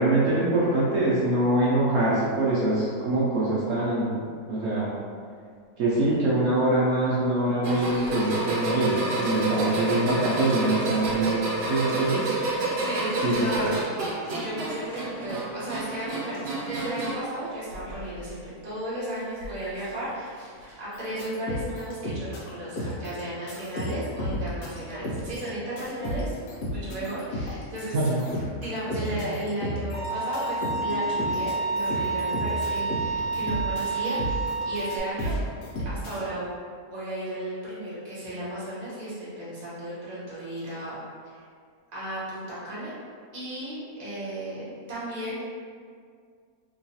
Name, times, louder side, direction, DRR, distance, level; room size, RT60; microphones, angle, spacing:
voice 1, 0.0-4.2 4.5-5.0 5.8-12.3 13.2-13.7 27.9-28.2 29.1-29.2, right 2 dB, 70° right, -7 dB, 1.0 m, -24 dB
sound 1, 7.6-17.3 17.7-18.3 19.4-19.5 20.6-20.7, right 2 dB, 85° right, 1.3 m, -30 dB
voice 2, 12.8-26.3 26.7-28.0 28.6-35.3 35.8-36.5 36.9-41.0 41.2-41.3 41.9-42.9 43.3-44.6 44.9-45.4, right 1 dB, 30° right, -9 dB, 0.9 m, -34 dB
sound 2, 20.9-22.5 22.8-23.2 23.5-36.3, equal, 80° left, 1.2 m, -33 dB
Bowed string instrument, 29.9-35.0, right 3 dB, 40° left, 1.2 m, -29 dB
3.0 x 3.0 x 2.7 m, 2.1 s
omnidirectional pair, 1.7 m